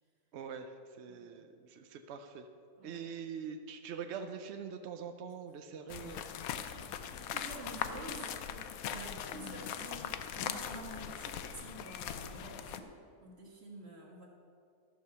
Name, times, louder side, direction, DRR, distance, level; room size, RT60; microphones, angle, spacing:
voice 1, 0.3-2.5 2.8-6.3, right 6 dB, 70° right, 6 dB, 0.6 m, -44 dB
sound 1, 5.9-12.8, left 9 dB, 70° left, 0.9 m, -40 dB
voice 2, 6.7-12.9 13.2-14.3, right 2 dB, 40° right, -1 dB, 1.8 m, -49 dB
13.0 x 5.2 x 6.7 m, 2.4 s
omnidirectional pair, 1.7 m